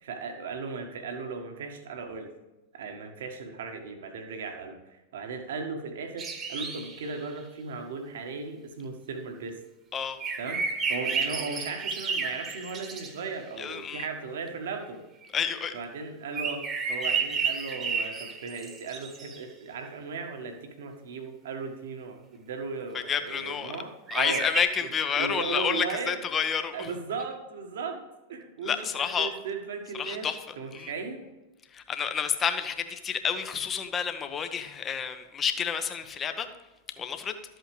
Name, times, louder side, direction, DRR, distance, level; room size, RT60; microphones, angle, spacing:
voice 1, 0.0-2.3 2.7-9.6 10.4-10.6 10.9-15.0 15.7-24.5 25.2-26.2 26.7-28.0 28.3-30.3 30.6-31.3, right 4 dB, 60° right, 5 dB, 1.6 m, -37 dB
sound 1, 6.2-7.1 10.2-13.2 16.3-19.4 24.1-24.6, right 5 dB, 25° right, 1.5 m, -31 dB
voice 2, 13.6-14.1 15.3-15.8 22.9-23.7 24.1-26.9 28.6-29.3 30.0-30.4 30.7-30.9 31.7-36.5 37.0-37.3, left 7 dB, 25° left, 8 dB, 1.0 m, -29 dB
13.0 x 8.1 x 3.3 m, 1.1 s
figure-of-eight pair, 90°, 0 cm